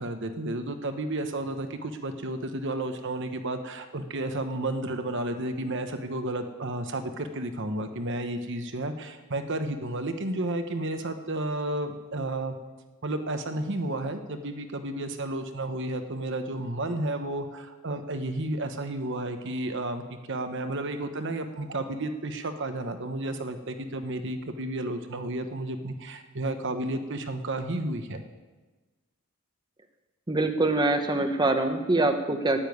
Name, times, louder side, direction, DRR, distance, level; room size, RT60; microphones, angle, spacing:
voice 1, 0.0-12.6 13.0-28.2, right 1 dB, 55° right, 7 dB, 1.0 m, -32 dB
voice 2, 30.3-32.6, right 2 dB, 20° right, 7 dB, 1.0 m, -24 dB
9.9 x 9.0 x 9.3 m, 1.2 s
head